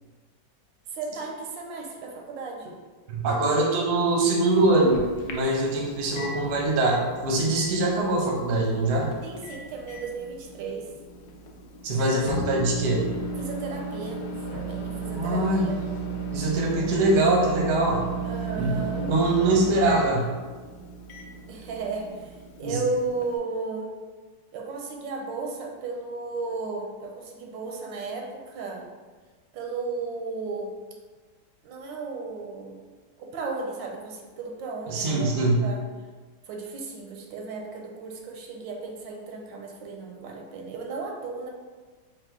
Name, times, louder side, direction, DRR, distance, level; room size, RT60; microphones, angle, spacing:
voice 1, 0.9-2.7 9.2-10.8 13.4-15.8 18.2-19.6 21.5-23.9 24.5-28.9 29.5-30.7 31.6-32.8 33.2-35.8 36.5-41.5, right 3 dB, 80° right, 1 dB, 1.3 m, -34 dB
voice 2, 3.1-5.0 5.3-9.1 11.8-13.1 15.1-15.7 16.3-18.0 18.6-18.7 19.0-20.3 22.6-22.8 34.9-35.6, right 2 dB, 55° right, -2 dB, 0.8 m, -23 dB
Microwave oven, 4.1-23.4, right 4 dB, 70° left, 1.0 m, -35 dB
4.2 x 2.4 x 3.6 m, 1.4 s
omnidirectional pair, 2.0 m